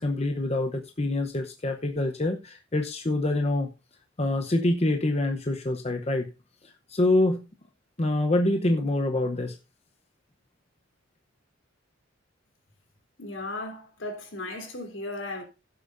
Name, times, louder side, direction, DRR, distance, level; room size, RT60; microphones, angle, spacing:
voice 1, 0.0-3.7 4.2-6.3 6.6-7.4 8.0-9.6, left 2 dB, 30° left, 0.8 m, -26 dB
voice 2, 13.2-15.4, left 2 dB, 70° left, 3.5 m, -36 dB
16.5 x 7.7 x 2.6 m
head